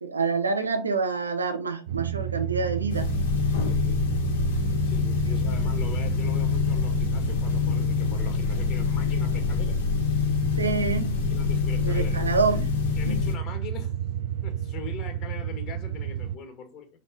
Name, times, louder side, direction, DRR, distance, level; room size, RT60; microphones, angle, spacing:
voice 1, 0.0-3.1 10.6-11.2 11.8-12.7 13.1-13.2, right 4 dB, 75° right, 1.0 m, -27 dB
sound 1, 1.9-16.4, right 11 dB, 55° right, 0.6 m, -31 dB
sound 2, 2.8-12.7, equal, 85° left, 0.9 m, -41 dB
sound 3, 2.9-13.3, left 8 dB, 60° left, 2.1 m, -26 dB
voice 2, 3.6-4.0 4.8-10.3 11.3-12.2 13.0-13.9 14.4-16.9, left 6 dB, 35° left, 2.2 m, -41 dB
5.3 x 4.4 x 5.3 m
figure-of-eight pair, 90°, 0 cm